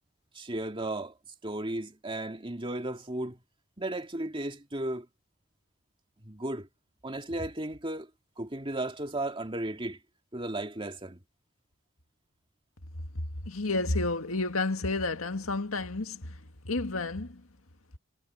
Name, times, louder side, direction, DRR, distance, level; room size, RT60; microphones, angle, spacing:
voice 1, 0.3-1.2 1.4-3.4 3.8-5.1 6.2-6.7 7.0-8.1 8.4-10.0 10.3-11.2, right 1 dB, 25° right, 2.4 m, -35 dB
voice 2, 13.4-17.5, left 2 dB, 85° left, 2.0 m, -31 dB
head